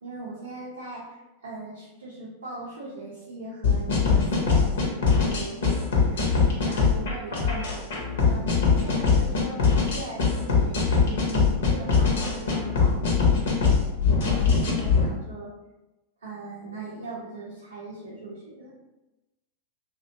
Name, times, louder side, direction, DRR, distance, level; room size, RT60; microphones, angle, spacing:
voice 1, 0.0-8.5 8.8-13.4 14.2-15.5 16.2-18.8, right 2 dB, 70° right, -7 dB, 0.5 m, -39 dB
sound 1, 3.6-15.0, left 5 dB, 60° left, 0.6 m, -22 dB
2.6 x 2.1 x 2.6 m, 1.0 s
figure-of-eight pair, 90°, 0 cm